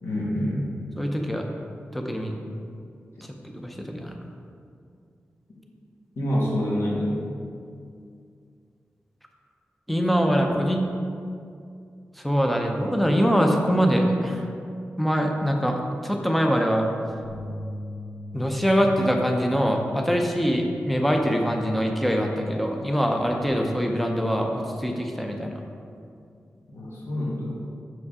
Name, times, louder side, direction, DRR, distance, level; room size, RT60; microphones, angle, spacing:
voice 1, 0.0-0.7 6.2-7.2 26.7-27.6, equal, 70° left, -4 dB, 1.6 m, -27 dB
voice 2, 1.0-1.5 1.9-2.4 3.4-4.2 9.9-10.9 12.2-14.5 15.0-16.9 18.3-25.6, equal, ahead, 2 dB, 0.5 m, -23 dB
sound 1, 17.2-23.5, left 2 dB, 20° left, 1.2 m, -41 dB
6.8 x 4.9 x 4.9 m, 2.4 s
wide cardioid pair, 170°, 4 cm